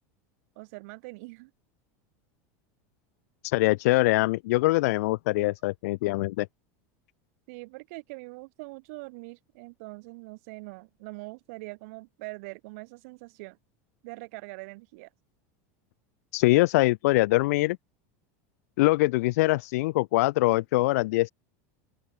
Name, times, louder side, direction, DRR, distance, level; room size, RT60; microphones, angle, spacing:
voice 1, 0.6-1.5 5.4-5.5 7.5-13.6 14.0-15.1, right 27 dB, 65° right, 7.3 m, -43 dB
voice 2, 3.4-6.5 16.3-17.8 18.8-21.3, left 20 dB, 75° left, 1.0 m, -23 dB
open air
supercardioid pair, 150°, 8 cm